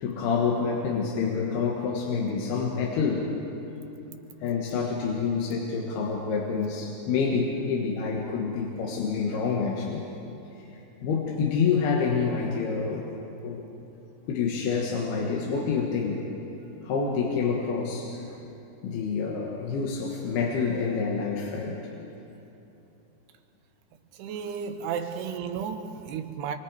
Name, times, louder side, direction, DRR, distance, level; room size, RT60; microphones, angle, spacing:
voice 1, 0.0-3.3 4.4-10.0 11.0-13.1 13.4-13.7 14.3-16.3 16.8-18.2 18.8-21.9, left 5 dB, 80° left, -1 dB, 3.5 m, -27 dB
voice 2, 24.1-26.6, right 7 dB, 90° right, 6 dB, 3.1 m, -33 dB
26.0 x 24.5 x 4.8 m, 2.9 s
omnidirectional pair, 4.5 m